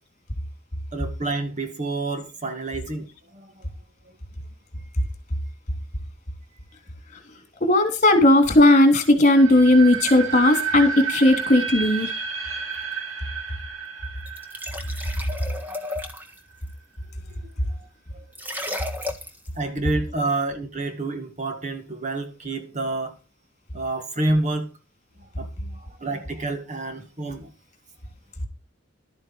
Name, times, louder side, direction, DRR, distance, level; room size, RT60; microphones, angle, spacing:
voice 1, 0.9-3.6 18.1-18.2 19.6-23.1 23.7-24.7 25.4-27.5, right 2 dB, 35° right, 1.8 m, -28 dB
voice 2, 7.6-12.1, left 1 dB, 35° left, 3.2 m, -16 dB
sound 1, 9.3-16.2, right 6 dB, 75° right, 2.8 m, -31 dB
sound 2, 14.3-16.4 18.3-19.5, left 1 dB, 10° right, 1.6 m, -33 dB
12.5 x 9.0 x 4.7 m
head